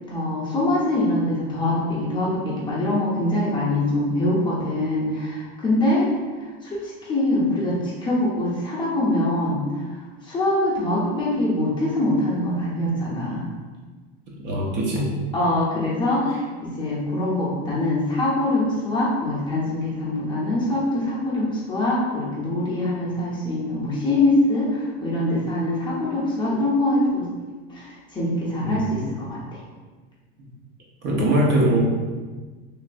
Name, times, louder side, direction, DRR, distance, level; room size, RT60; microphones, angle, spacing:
voice 1, 0.1-6.1 6.6-9.6 10.2-13.5 15.3-27.3 27.7-29.6, left 1 dB, 15° left, -7 dB, 0.6 m, -23 dB
voice 2, 14.3-15.0 28.6-28.8 31.0-31.8, right 1 dB, 35° right, -3 dB, 0.6 m, -21 dB
3.1 x 2.5 x 2.5 m, 1.4 s
supercardioid pair, 140°, 30 cm